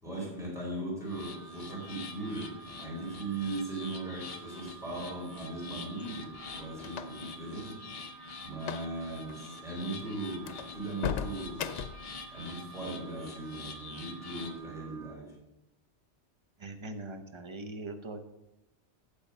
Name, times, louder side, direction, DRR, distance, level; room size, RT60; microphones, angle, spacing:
voice 1, 0.0-7.8 8.4-11.7 12.3-15.3, right 2 dB, 5° right, -5 dB, 4.5 m, -38 dB
sound 1, 1.0-14.6, left 4 dB, 60° left, 1.3 m, -46 dB
Alarm, 1.1-15.2, right 7 dB, 85° right, 1.1 m, -52 dB
sound 2, 6.0-7.4 8.6-8.9 9.2-9.4 9.9-10.0 10.4-12.1, left 8 dB, 85° left, 0.9 m, -37 dB
voice 2, 16.6-18.3, right 2 dB, 30° right, 7 dB, 0.8 m, -41 dB
9.0 x 7.2 x 5.5 m, 0.90 s
omnidirectional pair, 1.2 m